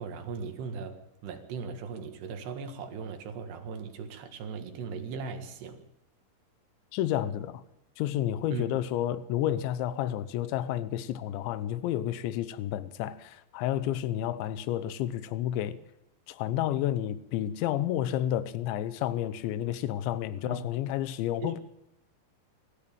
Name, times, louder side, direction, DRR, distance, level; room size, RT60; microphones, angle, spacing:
voice 1, 0.0-5.8 8.5-8.7 20.4-20.6 21.4-21.6, right 5 dB, 70° right, 3.8 m, -38 dB
voice 2, 6.9-7.6 8.0-15.8 16.3-21.6, left 12 dB, 80° left, 3.2 m, -30 dB
24.0 x 14.5 x 8.8 m
omnidirectional pair, 5.3 m